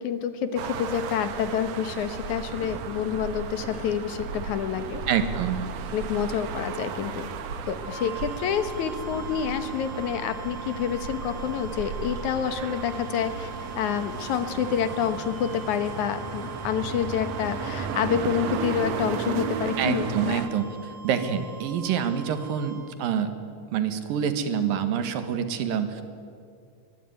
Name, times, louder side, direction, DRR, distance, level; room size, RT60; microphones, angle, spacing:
voice 1, 0.0-5.0 5.9-7.3 7.7-20.4, left 8 dB, 65° left, 10 dB, 2.5 m, -28 dB
sound 1, 0.6-20.5, right 6 dB, 60° right, 2.1 m, -34 dB
sound 2, 2.5-20.3, equal, 20° left, 0.4 m, -47 dB
voice 2, 5.1-5.6 19.8-20.7 21.0-23.3 23.7-26.0, right 8 dB, 85° right, 9 dB, 3.3 m, -26 dB
sound 3, 7.7-23.0, right 4 dB, ahead, 7.1 m, -44 dB
22.5 x 22.0 x 9.4 m, 2.4 s
omnidirectional pair, 3.9 m